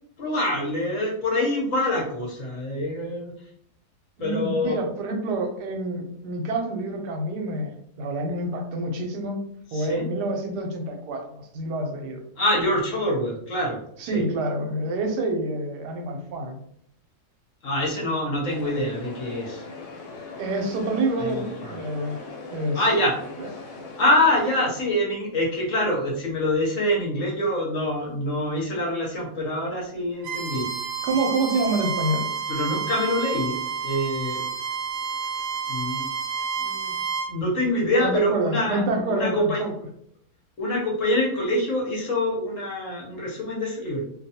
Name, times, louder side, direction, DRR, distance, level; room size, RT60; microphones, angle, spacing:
voice 1, 0.2-3.3 4.2-4.8 9.7-10.1 12.4-13.8 14.0-14.2 17.6-19.6 21.2-21.8 22.7-23.2 24.0-30.7 32.5-34.4 35.7-36.1 36.6-36.9 37.3-38.8 39.1-39.6 40.6-44.0, left 1 dB, 60° left, -3 dB, 1.0 m, -25 dB
voice 2, 4.2-9.4 9.7-11.2 11.5-12.2 14.0-16.6 20.4-22.2 22.5-22.8 23.4-23.5 31.1-32.3 38.0-39.7, right 2 dB, 85° right, 3 dB, 1.2 m, -27 dB
sound 1, 18.5-24.7, left 3 dB, 90° left, 1.2 m, -40 dB
Bowed string instrument, 30.2-37.3, right 6 dB, 70° right, 0.8 m, -30 dB
2.6 x 2.2 x 2.7 m, 0.68 s
omnidirectional pair, 1.7 m